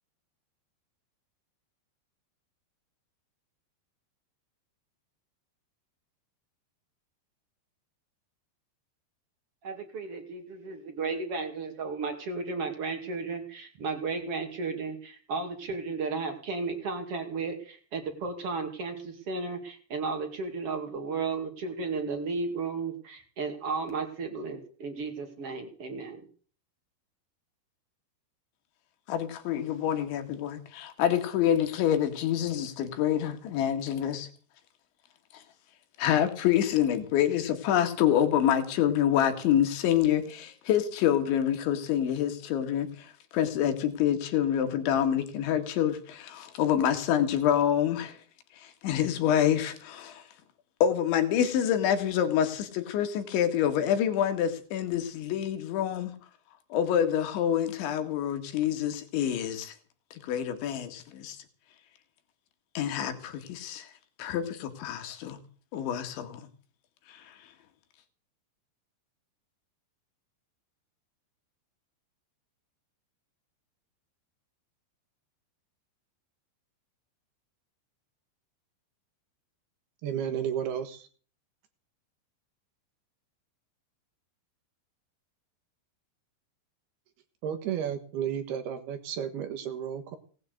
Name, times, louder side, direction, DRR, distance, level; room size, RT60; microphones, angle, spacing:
voice 1, 9.6-26.3, right 4 dB, 40° right, 2.5 m, -34 dB
voice 2, 29.1-34.3 36.0-48.2 48.6-50.2 50.8-56.1 56.7-59.7 60.1-61.4 62.8-63.9 64.2-65.4 65.7-66.4 67.1-67.3, left 10 dB, 75° left, 4.3 m, -27 dB
voice 3, 80.0-81.1 87.4-90.2, right 9 dB, 65° right, 3.1 m, -32 dB
18.5 x 8.9 x 8.0 m
omnidirectional pair, 5.4 m